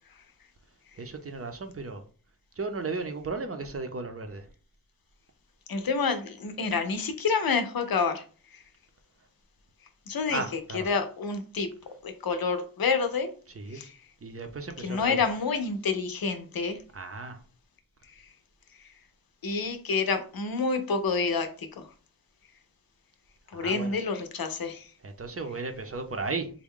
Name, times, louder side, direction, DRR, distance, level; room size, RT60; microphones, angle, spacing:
voice 1, 1.0-2.0 2.6-4.5 10.3-10.9 13.5-13.8 14.2-15.6 16.9-17.4 23.5-24.0 25.0-26.5, right 3 dB, 40° right, 0.6 m, -35 dB
voice 2, 5.7-8.2 10.1-10.4 10.7-11.7 12.0-13.3 13.7-13.9 14.8-16.8 19.4-21.9 23.5-24.9, left 4 dB, 75° left, 0.6 m, -28 dB
3.5 x 2.2 x 3.6 m
wide cardioid pair, 55°, 36 cm